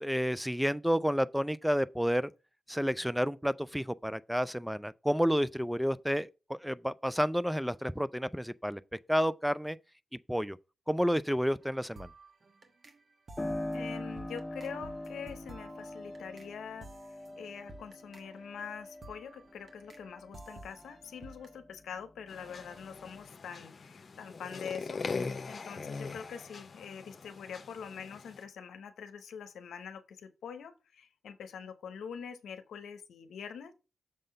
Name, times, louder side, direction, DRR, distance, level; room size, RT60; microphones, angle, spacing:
voice 1, 0.0-2.3 2.7-8.8 9.1-9.8 10.3-10.6 10.9-12.1, equal, ahead, 0.3 m, -30 dB
sound 1, 11.6-21.6, right 2 dB, 55° right, 1.3 m, -53 dB
Piano, 13.4-21.8 22.2-23.3, left 1 dB, 15° left, 1.2 m, -42 dB
voice 2, 13.7-33.7, left 7 dB, 85° left, 0.7 m, -45 dB
sound 2, 22.3-28.4, left 4 dB, 55° left, 0.8 m, -41 dB
6.5 x 3.7 x 5.4 m
cardioid pair, 50°, 0 cm